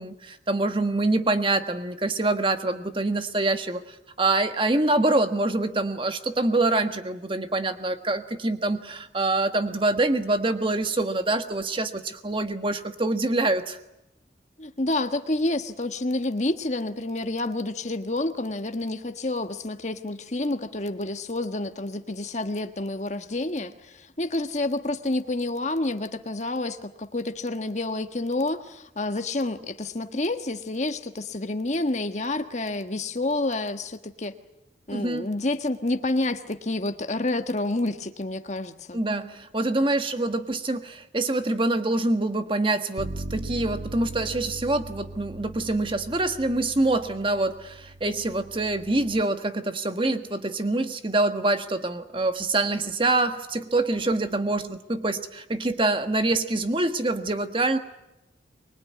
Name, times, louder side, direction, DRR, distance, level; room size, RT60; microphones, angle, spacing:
voice 1, 0.0-3.8 4.2-13.8 34.9-35.3 38.9-57.8, right 2 dB, 30° right, 8 dB, 1.4 m, -25 dB
voice 2, 14.6-34.3 34.9-39.0, left 2 dB, 40° left, 7 dB, 1.4 m, -29 dB
Bass guitar, 43.0-49.2, right 2 dB, 60° right, 1.0 m, -39 dB
24.0 x 21.5 x 9.5 m, 0.91 s
head